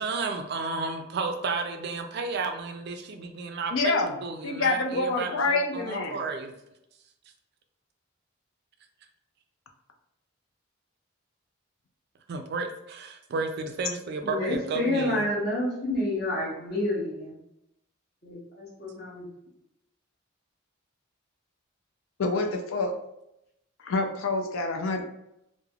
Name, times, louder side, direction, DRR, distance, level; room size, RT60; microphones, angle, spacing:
voice 1, 0.0-6.5 12.3-15.4, right 4 dB, 50° right, 5 dB, 0.3 m, -32 dB
voice 2, 3.7-4.1 4.4-6.2 22.2-22.9 23.8-25.0, left 3 dB, 75° left, 4 dB, 0.4 m, -27 dB
voice 3, 14.2-17.4 18.2-19.2, left 1 dB, 50° left, -6 dB, 1.0 m, -29 dB
3.2 x 2.1 x 2.3 m, 0.83 s
head